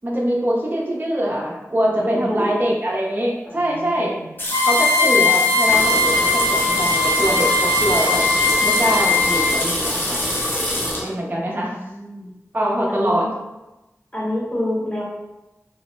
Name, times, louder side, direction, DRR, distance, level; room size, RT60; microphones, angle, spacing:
voice 1, 0.0-4.2 4.7-8.2 8.6-10.3 11.0-11.7 12.5-13.3, equal, 35° right, -3 dB, 0.5 m, -23 dB
voice 2, 1.9-2.5 3.5-4.3 11.4-12.3 12.9-13.3 14.1-15.0, left 1 dB, 20° left, -6 dB, 1.0 m, -28 dB
sound 1, 4.4-11.1, left 1 dB, 40° left, 0.6 m, -26 dB
sound 2, 4.5-9.8, left 3 dB, 85° left, 0.6 m, -19 dB
sound 3, 5.6-11.0, equal, 5° left, 0.7 m, -28 dB
3.0 x 2.0 x 2.9 m, 1.0 s
wide cardioid pair, 55°, 6 cm